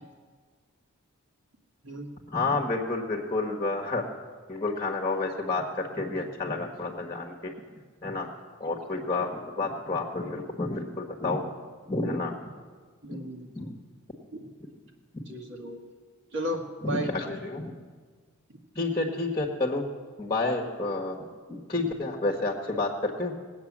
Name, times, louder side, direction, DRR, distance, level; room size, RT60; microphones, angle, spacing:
voice 1, 2.3-4.0 4.5-7.5 8.0-8.3 8.6-11.5 11.9-12.3 13.5-13.7 16.8-17.7 18.7-19.9 20.2-21.2 21.5-23.3, left 3 dB, 20° left, 1 dB, 1.4 m, -30 dB
voice 2, 13.0-13.5 14.3-14.5 15.3-15.8 16.3-17.1 18.5-18.6, equal, 55° right, 2 dB, 1.7 m, -34 dB
19.0 x 8.3 x 7.3 m, 1.5 s
head